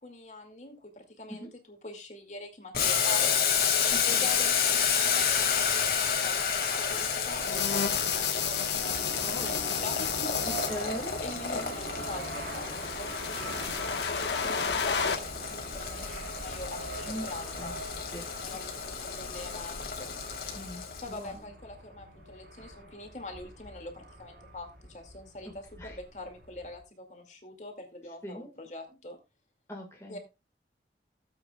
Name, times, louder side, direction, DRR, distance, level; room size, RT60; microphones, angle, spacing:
voice 1, 0.0-3.3 4.0-10.3 10.6-10.8 11.2-13.1 13.8-17.8 18.4-20.2 21.0-29.2 30.1-30.2, left 2 dB, 40° left, 4 dB, 2.2 m, -44 dB
Boiling, 2.7-21.2, left 7 dB, 60° left, 2.1 m, -31 dB
voice 2, 3.9-4.3 9.2-9.6 10.7-11.8 15.6-15.7 17.0-17.7 18.1-18.2 20.5-21.5 25.8-26.0 28.2-28.5 29.7-30.2, equal, 15° left, -1 dB, 1.6 m, -41 dB
sound 1, 7.4-10.7 11.8-15.2, left 6 dB, 85° left, 1.2 m, -32 dB
sound 2, 8.8-26.8, right 2 dB, 65° right, 3.8 m, -44 dB
16.5 x 8.1 x 2.3 m, 0.26 s
head